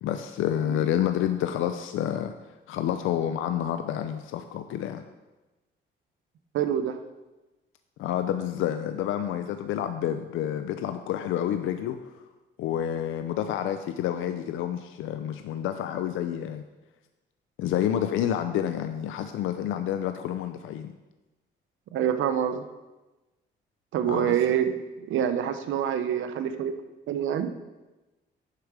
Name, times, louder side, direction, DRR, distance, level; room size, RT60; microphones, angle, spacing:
voice 1, 0.0-2.3 2.7-5.0 8.0-12.2 12.6-16.6 17.6-20.9 24.1-24.4, left 10 dB, 85° left, 8 dB, 0.5 m, -29 dB
voice 2, 6.5-7.0 21.9-22.6 23.9-24.7 25.0-26.7 27.1-27.5, right 9 dB, 80° right, 9 dB, 0.8 m, -26 dB
11.5 x 4.9 x 4.8 m, 1.1 s
cardioid pair, 90°, 20 cm